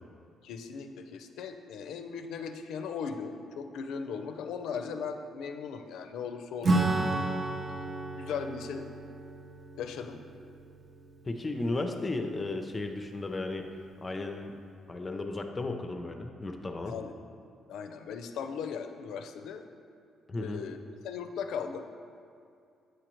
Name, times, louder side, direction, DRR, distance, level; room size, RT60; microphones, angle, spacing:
voice 1, 0.4-7.8 8.1-8.9 9.8-10.2 16.8-17.1 17.7-19.6 20.4-21.9, left 6 dB, 80° left, 6 dB, 0.4 m, -38 dB
Acoustic guitar / Strum, 6.6-12.6, right 2 dB, 40° right, 0.6 m, -33 dB
voice 2, 11.2-13.7 14.0-14.6 14.9-16.9 20.3-20.6, left 2 dB, 25° left, 5 dB, 0.5 m, -34 dB
7.9 x 4.9 x 3.0 m, 2.5 s
cardioid pair, 90°, 0 cm